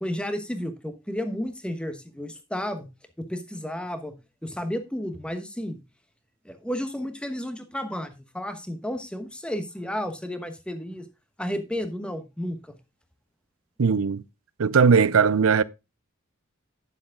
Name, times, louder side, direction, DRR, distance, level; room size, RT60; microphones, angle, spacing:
voice 1, 0.0-2.9 3.2-4.2 4.4-5.8 6.4-11.0 11.4-12.8, equal, 5° left, 1.1 m, -32 dB
voice 2, 13.8-14.2 14.6-15.6, right 5 dB, 85° right, 0.6 m, -19 dB
10.0 x 7.2 x 3.7 m
head